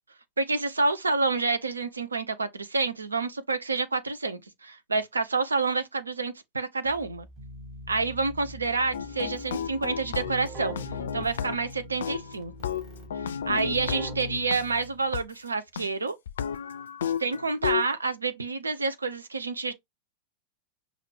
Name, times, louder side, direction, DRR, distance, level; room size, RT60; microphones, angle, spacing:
voice 1, 0.4-7.3 7.9-10.8 11.1-12.5 13.5-16.2 17.2-19.7, right 3 dB, 75° right, 0.6 m, -28 dB
Keyboard (musical), 6.9-15.1, left 1 dB, 30° right, 1.4 m, -42 dB
sound 1, 8.9-11.7 12.0-14.6 15.1-15.2 15.8-15.9 16.3-17.9, left 8 dB, 65° left, 0.4 m, -33 dB
5.6 x 2.5 x 3.3 m
figure-of-eight pair, 90°, 0 cm